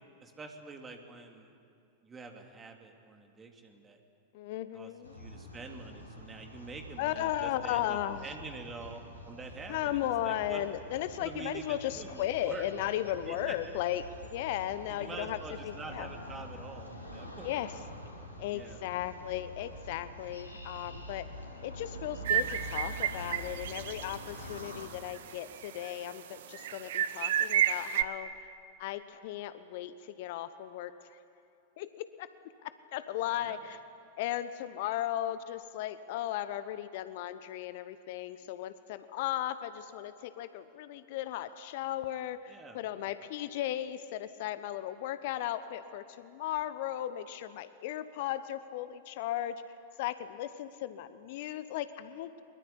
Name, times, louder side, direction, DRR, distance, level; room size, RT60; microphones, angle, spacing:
voice 1, 0.2-1.5 2.0-4.0 4.7-9.0 9.2-10.6 11.2-12.7 13.3-13.8 14.9-17.6 18.5-18.8 33.4-33.6 42.5-43.1, right 4 dB, 20° right, 3 dB, 3.0 m, -46 dB
voice 2, 4.3-5.1 7.0-8.3 9.7-14.0 14.3-16.1 17.4-17.7 18.4-21.3 21.6-28.3 28.8-31.2 31.8-32.3 32.6-33.8 34.2-49.6 50.0-52.3, left 12 dB, 50° left, 13 dB, 0.9 m, -36 dB
sound 1, 5.0-24.9, equal, 90° right, 3.8 m, -46 dB
sound 2, 22.2-24.2 24.5-24.6 25.1-25.9 26.5-28.0, right 10 dB, 55° right, 1.1 m, -31 dB
23.0 x 22.0 x 9.8 m, 2.5 s
figure-of-eight pair, 90°, 0 cm